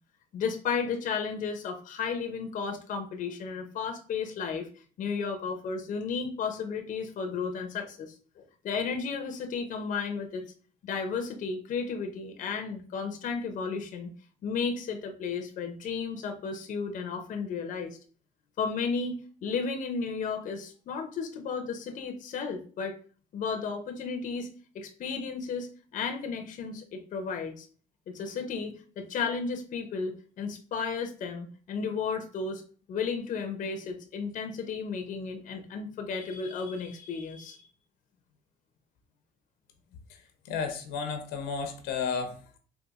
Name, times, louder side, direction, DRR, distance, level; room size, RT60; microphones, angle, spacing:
voice 1, 0.3-4.7 5.0-10.4 10.8-14.1 14.4-18.0 18.6-23.0 23.3-24.5 24.7-27.7 28.1-32.6 32.9-37.7, left 5 dB, 50° left, 5 dB, 0.6 m, -33 dB
voice 2, 40.4-42.6, left 5 dB, 90° left, 5 dB, 0.7 m, -33 dB
3.9 x 2.4 x 2.3 m, 0.42 s
cardioid pair, 110°, 17 cm